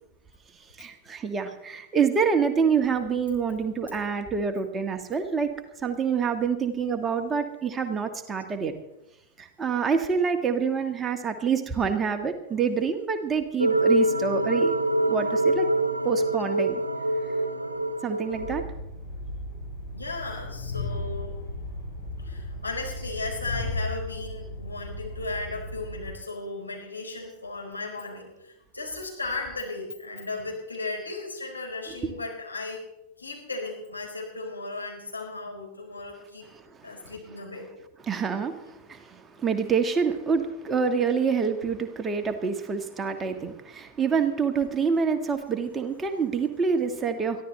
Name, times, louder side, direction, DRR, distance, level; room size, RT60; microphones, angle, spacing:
voice 1, 0.8-5.5 5.8-8.7 9.4-14.8 15.1-15.7 16.0-16.8 18.0-18.6 31.9-32.1 36.5-37.4 38.0-47.4, right 6 dB, 20° right, 6 dB, 1.6 m, -27 dB
sound 1, 13.6-18.6, right 1 dB, 80° right, 1.0 m, -25 dB
Train, 18.3-26.1, left 2 dB, 60° left, 6.7 m, -35 dB
voice 2, 19.9-21.4 22.2-32.9 33.2-36.4 36.8-37.7, left 3 dB, 80° left, -1 dB, 4.8 m, -36 dB
22.5 x 15.0 x 3.3 m, 0.86 s
figure-of-eight pair, 90°, 0 cm